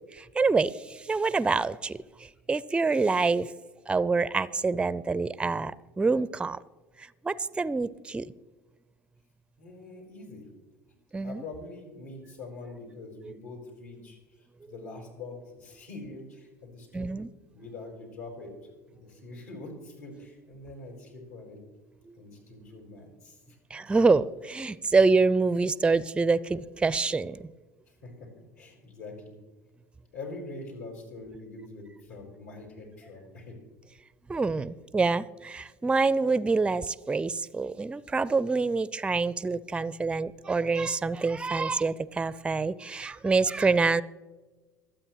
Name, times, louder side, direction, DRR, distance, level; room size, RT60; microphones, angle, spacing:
voice 1, 0.1-2.0 2.5-3.5 3.9-6.6 7.0-8.3 11.1-11.4 13.2-13.3 16.9-17.3 23.7-27.5 34.3-44.0, right 4 dB, 10° right, 19 dB, 0.4 m, -26 dB
voice 2, 9.6-10.5 11.2-14.2 14.7-17.1 17.5-18.5 18.9-21.6 22.2-23.6 28.0-29.4 30.1-33.6, left 2 dB, 80° left, 0 dB, 4.6 m, -44 dB
24.5 x 8.8 x 3.1 m, 1.3 s
figure-of-eight pair, 70°, 9 cm